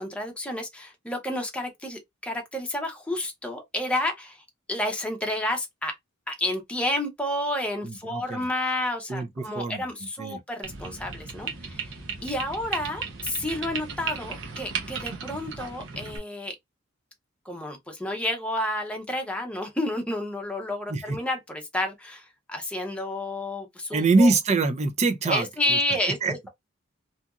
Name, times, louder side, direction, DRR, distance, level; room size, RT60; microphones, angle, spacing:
voice 1, 0.0-4.4 4.7-5.9 6.3-16.5 17.4-24.3 25.3-26.5, left 1 dB, 5° left, 0.6 m, -30 dB
voice 2, 7.8-8.5 9.1-9.8 10.2-10.4 20.9-21.2 23.9-25.8 26.2-26.3, right 3 dB, 35° right, 0.4 m, -24 dB
sound 1, 10.6-16.2, right 5 dB, 65° right, 0.7 m, -35 dB
2.8 x 2.5 x 2.3 m
head